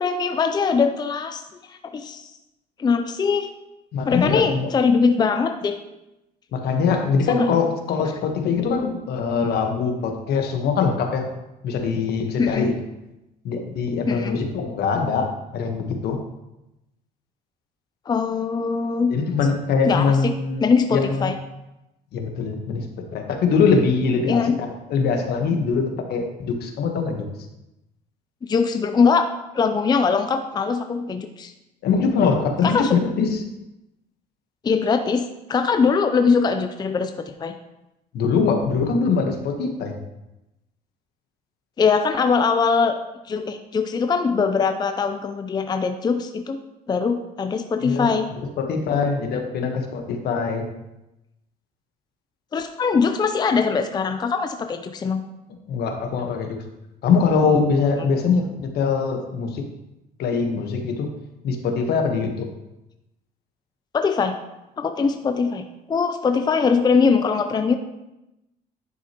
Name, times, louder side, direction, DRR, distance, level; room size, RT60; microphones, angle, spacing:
voice 1, 0.0-1.4 1.7-2.3 2.8-3.5 4.0-5.8 7.3-7.5 12.4-12.7 14.1-14.4 18.1-19.2 19.8-20.3 20.6-21.4 24.3-24.6 28.5-29.3 29.5-31.5 32.6-33.0 34.6-37.6 41.8-43.0 43.3-46.6 46.9-48.3 52.5-55.2 63.9-64.4 64.8-67.8, left 5 dB, 25° left, 7 dB, 0.5 m, -21 dB
voice 2, 3.9-4.7 6.5-11.2 11.6-12.7 13.4-15.3 15.5-16.2 19.1-20.6 20.9-21.3 22.1-22.9 23.1-27.3 31.8-33.4 38.1-40.0 47.8-48.1 48.6-50.7 55.7-56.6 57.0-59.6 60.2-61.1 61.4-62.5, left 5 dB, 70° left, 4 dB, 1.2 m, -22 dB
10.5 x 6.1 x 3.0 m, 0.94 s
cardioid pair, 110°, 17 cm